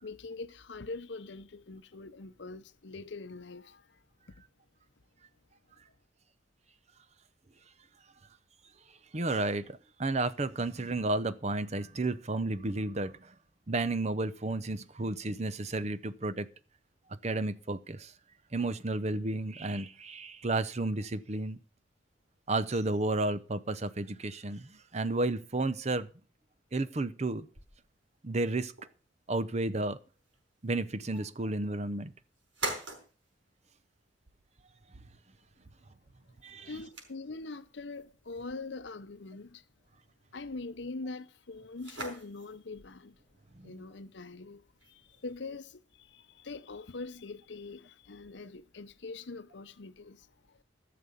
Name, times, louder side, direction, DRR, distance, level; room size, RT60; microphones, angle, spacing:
voice 1, 0.0-4.4 36.6-39.6 40.3-43.2 43.6-50.6, left 3 dB, 65° left, 0.7 m, -43 dB
voice 2, 9.1-13.3 13.7-16.5 17.2-18.1 18.5-21.6 22.5-26.1 26.7-27.5 28.2-28.7 29.3-30.0 30.6-32.1 36.4-36.7 43.6-43.7, right 2 dB, 35° right, 0.7 m, -32 dB
sound 1, 27.5-46.0, right 2 dB, 75° right, 5.2 m, -47 dB
15.0 x 6.8 x 7.0 m
head